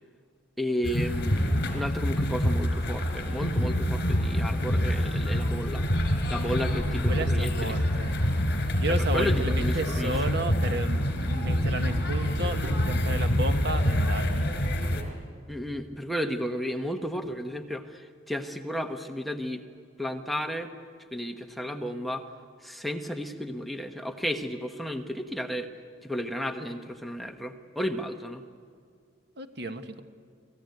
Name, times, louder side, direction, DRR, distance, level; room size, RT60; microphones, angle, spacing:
voice 1, 0.6-5.8 6.3-7.7 9.1-10.2 15.5-19.6 20.0-20.7 21.1-22.2 22.6-25.7 26.0-28.4, equal, ahead, 4 dB, 1.1 m, -33 dB
sound 1, 0.8-15.0, equal, 55° left, 4.0 m, -26 dB
voice 2, 6.9-8.2 8.8-14.5 29.4-30.0, right 1 dB, 55° right, 7 dB, 1.5 m, -33 dB
sound 2, 12.6-13.2 14.8-15.2 17.2-17.8, right 1 dB, 70° right, 4.2 m, -41 dB
28.5 x 19.0 x 9.4 m, 2.2 s
head